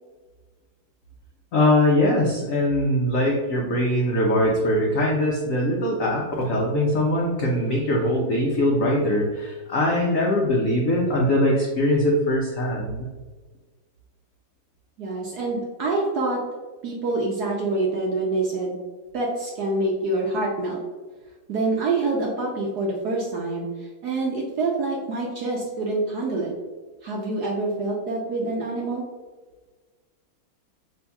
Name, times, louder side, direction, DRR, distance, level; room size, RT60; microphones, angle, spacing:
voice 1, 1.5-13.1, left 1 dB, 75° left, -3 dB, 0.7 m, -22 dB
voice 2, 15.0-16.4 16.8-18.8 19.1-20.8 21.5-23.7 24.0-26.5 27.0-29.0, right 2 dB, 70° right, -2 dB, 1.0 m, -26 dB
5.4 x 3.5 x 2.3 m, 1.3 s
omnidirectional pair, 2.3 m